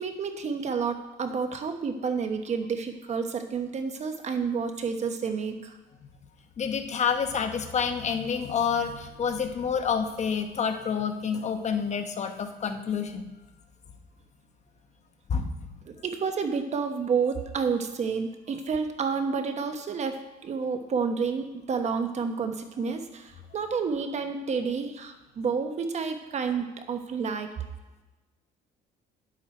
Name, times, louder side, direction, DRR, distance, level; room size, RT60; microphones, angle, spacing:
voice 1, 0.0-5.8 15.9-27.5, right 5 dB, 40° right, 6 dB, 1.1 m, -30 dB
voice 2, 6.6-13.3 15.3-15.7, left 6 dB, 45° left, 7 dB, 1.0 m, -28 dB
10.5 x 8.0 x 4.4 m, 1.1 s
cardioid pair, 110°, 17 cm